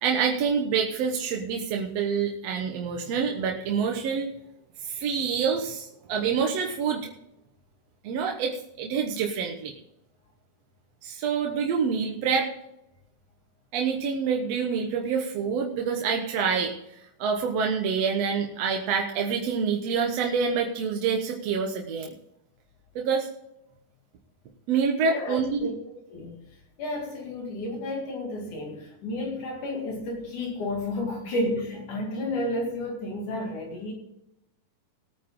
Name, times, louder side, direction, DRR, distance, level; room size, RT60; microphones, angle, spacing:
voice 1, 0.0-4.3 4.8-7.1 8.0-9.7 11.0-12.5 13.7-16.7 17.2-22.1 23.0-23.3 24.7-25.7, right 6 dB, 60° right, 1 dB, 1.9 m, -27 dB
voice 2, 25.0-26.4 26.8-33.9, left 1 dB, 65° left, 0 dB, 3.8 m, -32 dB
19.5 x 9.1 x 3.8 m, 0.84 s
omnidirectional pair, 3.8 m